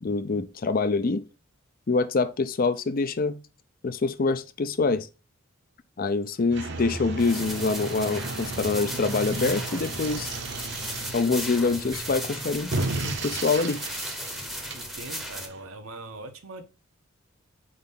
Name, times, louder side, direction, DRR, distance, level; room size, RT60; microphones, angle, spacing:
voice 1, 0.0-1.2 1.9-3.4 3.8-5.1 6.0-10.4 11.1-12.7 13.0-13.8, left 4 dB, 40° left, 0.5 m, -25 dB
sound 1, 6.5-15.7, right 3 dB, 55° right, 0.8 m, -35 dB
sound 2, 7.2-15.5, equal, ahead, 0.8 m, -36 dB
Mechanical fan, 7.3-12.5, right 3 dB, 25° right, 0.5 m, -42 dB
voice 2, 14.7-16.6, right 2 dB, 80° right, 1.0 m, -41 dB
4.4 x 4.0 x 5.4 m
head